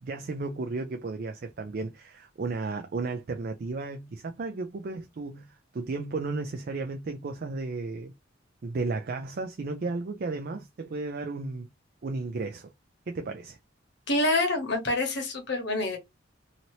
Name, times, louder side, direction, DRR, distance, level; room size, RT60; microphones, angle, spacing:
voice 1, 0.0-8.1 8.6-11.7 12.0-12.7 13.1-13.6, right 3 dB, 45° right, 0.4 m, -34 dB
voice 2, 14.1-16.0, left 2 dB, 55° left, 1.1 m, -26 dB
2.8 x 2.7 x 3.0 m
head